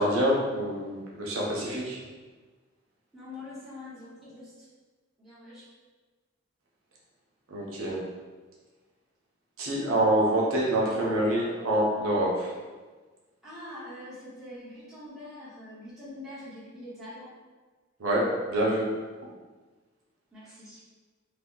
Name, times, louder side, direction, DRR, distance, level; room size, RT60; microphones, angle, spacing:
voice 1, 0.0-2.0 7.5-8.0 9.6-12.5 18.0-18.8, right 1 dB, 85° right, -4 dB, 0.8 m, -26 dB
voice 2, 3.1-4.7 5.2-5.6 13.4-17.3 20.3-20.9, left 1 dB, ahead, -11 dB, 0.9 m, -44 dB
2.8 x 2.2 x 3.6 m, 1.3 s
head